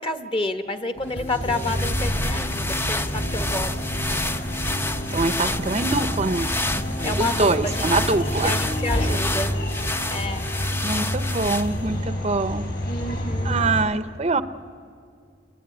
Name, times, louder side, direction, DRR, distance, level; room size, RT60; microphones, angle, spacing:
voice 1, 0.0-3.8 7.0-8.1 8.4-9.5 10.1-10.5 12.8-13.6, left 2 dB, 30° left, 8 dB, 1.4 m, -29 dB
sound 1, 1.0-11.4, equal, 70° left, 5.9 m, -35 dB
sound 2, 1.3-13.8, equal, 50° left, 5.5 m, -29 dB
sound 3, 1.3-12.0, left 2 dB, 15° left, 0.6 m, -30 dB
voice 2, 5.1-8.5 10.8-12.7 13.4-14.4, right 3 dB, 35° right, 12 dB, 0.7 m, -24 dB
29.0 x 21.5 x 9.6 m, 2.3 s
head